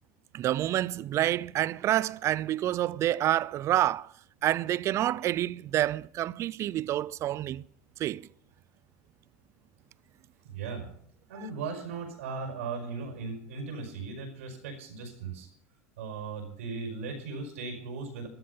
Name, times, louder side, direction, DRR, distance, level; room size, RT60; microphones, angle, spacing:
voice 1, 0.3-4.1 4.4-7.6 8.0-8.3 11.4-11.5, right 13 dB, 40° right, 0.5 m, -28 dB
voice 2, 10.4-10.9 11.3-15.5 16.0-18.3, right 4 dB, 75° right, 5.3 m, -37 dB
14.0 x 12.5 x 5.7 m
hypercardioid pair, 95°, 7 cm